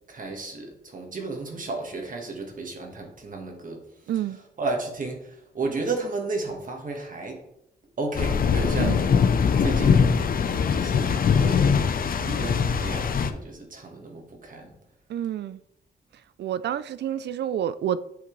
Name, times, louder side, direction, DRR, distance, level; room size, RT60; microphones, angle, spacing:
voice 1, 0.1-3.8 4.6-7.4 8.0-9.0 9.6-10.2 10.7-11.7 12.2-14.7, right 3 dB, 50° right, 1.5 m, -33 dB
voice 2, 4.1-4.4 8.8-9.0 15.1-15.6 16.4-18.0, right 10 dB, 85° right, 0.4 m, -28 dB
sound 1, 8.1-13.3, left 6 dB, 60° left, 0.6 m, -22 dB
7.2 x 5.9 x 3.2 m
wide cardioid pair, 105°, 17 cm